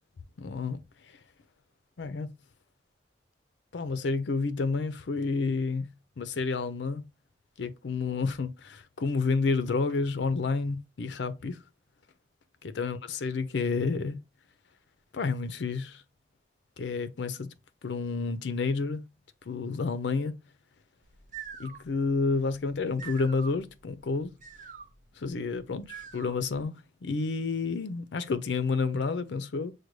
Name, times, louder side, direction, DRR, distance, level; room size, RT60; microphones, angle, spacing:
voice 1, 0.4-0.8 2.0-2.3 3.7-5.9 6.2-7.0 7.6-11.6 12.6-14.2 15.1-16.0 16.8-17.5 17.8-19.0 19.5-20.3 21.6-24.3 25.2-26.7 27.0-29.7, left 4 dB, 85° left, 0.5 m, -30 dB
sound 1, 21.0-26.6, right 7 dB, 45° right, 0.5 m, -47 dB
6.4 x 2.2 x 3.1 m
head